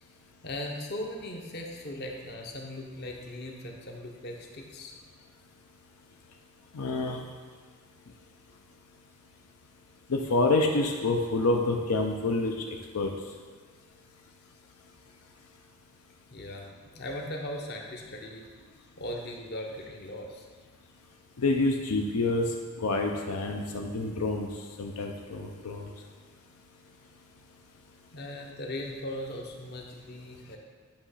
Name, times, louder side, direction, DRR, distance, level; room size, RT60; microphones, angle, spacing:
voice 1, 0.4-4.9 16.3-18.4 19.0-20.5 28.1-30.6, left 1 dB, 45° left, 1 dB, 0.8 m, -38 dB
voice 2, 6.7-7.2 10.1-13.1 21.4-22.5 22.8-24.5 24.8-25.9, left 2 dB, 85° left, 2 dB, 0.6 m, -27 dB
8.6 x 3.0 x 5.6 m, 1.5 s
head